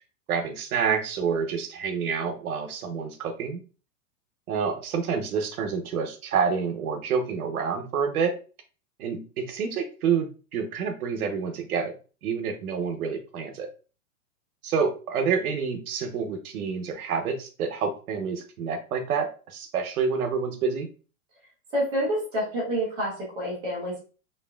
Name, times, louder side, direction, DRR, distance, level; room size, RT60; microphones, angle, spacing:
voice 1, 0.3-3.6 4.5-8.3 9.0-13.7 14.6-20.9, right 6 dB, 90° right, 5 dB, 0.9 m, -28 dB
voice 2, 21.7-24.0, equal, 10° right, -6 dB, 0.4 m, -28 dB
2.9 x 2.4 x 2.3 m, 0.36 s
supercardioid pair, 165°, 42 cm